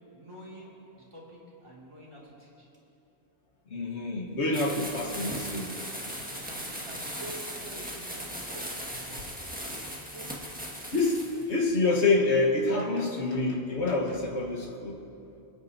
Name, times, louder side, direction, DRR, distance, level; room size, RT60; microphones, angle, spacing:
voice 1, 0.1-2.7 5.1-5.4 6.3-8.7 9.0-9.6 10.1-10.4 11.2-11.5, right 1 dB, 25° right, -6 dB, 2.4 m, -48 dB
voice 2, 3.7-5.7 6.1-6.2 10.9-15.0, left 3 dB, 90° left, 0 dB, 1.6 m, -27 dB
sound 1, 4.5-11.4, equal, 10° right, 1.6 m, -38 dB
26.5 x 9.6 x 2.7 m, 2.9 s
omnidirectional pair, 1.1 m